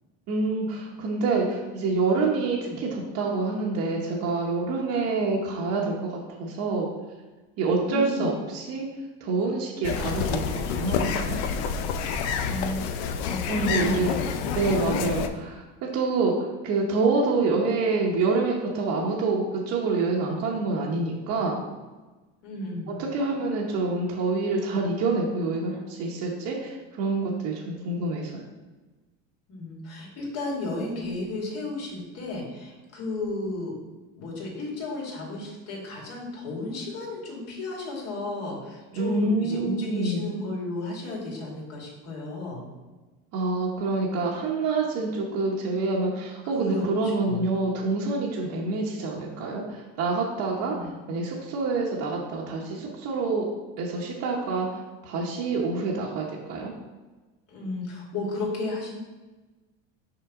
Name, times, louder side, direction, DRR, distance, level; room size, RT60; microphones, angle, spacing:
voice 1, 0.3-6.9 7.6-8.9 9.2-11.4 13.5-14.1 14.5-21.6 22.9-28.4 38.9-40.3 43.3-53.4 53.8-56.7, right 3 dB, 55° right, -3 dB, 1.1 m, -27 dB
voice 2, 7.8-8.3 12.4-14.7 14.9-15.2 22.4-22.9 29.5-33.7 34.2-42.7 46.5-46.8 47.2-47.5 50.6-50.9 57.5-58.9, left 2 dB, 50° left, -2 dB, 2.3 m, -33 dB
sound 1, 9.8-15.3, left 7 dB, 85° left, 0.6 m, -28 dB
5.9 x 5.5 x 3.7 m, 1.2 s
cardioid pair, 135°, 32 cm